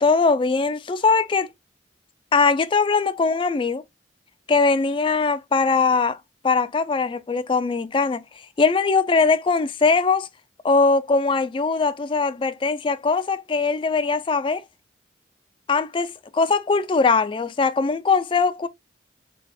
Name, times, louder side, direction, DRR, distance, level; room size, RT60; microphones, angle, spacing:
voice 1, 0.0-1.5 2.3-3.8 4.5-6.2 6.4-8.2 8.6-10.3 10.6-14.6 15.7-18.7, left 4 dB, 30° left, 0.3 m, -21 dB
4.1 x 3.4 x 2.3 m
head